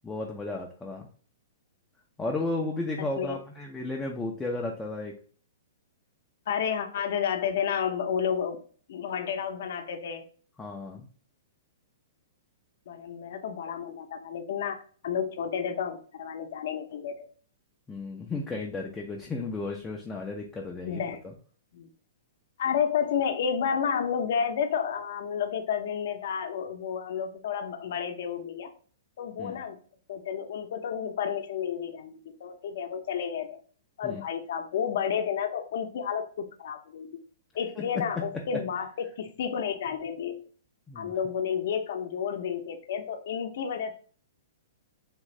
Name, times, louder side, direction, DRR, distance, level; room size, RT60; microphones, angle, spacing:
voice 1, 0.0-1.1 2.2-5.1 10.6-11.1 17.9-21.0 29.4-29.6 34.0-34.2 37.8-38.2 40.9-41.1, left 2 dB, 10° left, 0 dB, 0.3 m, -34 dB
voice 2, 3.0-3.4 6.5-8.6 8.9-10.2 12.9-14.8 15.0-17.3 20.8-21.2 21.7-21.9 22.6-28.7 29.2-29.8 30.1-33.6 34.0-37.2 37.5-38.9 39.2-40.4 41.0-43.9, left 7 dB, 60° left, 6 dB, 0.5 m, -31 dB
3.5 x 2.4 x 3.0 m, 0.43 s
hypercardioid pair, 165°, 0 cm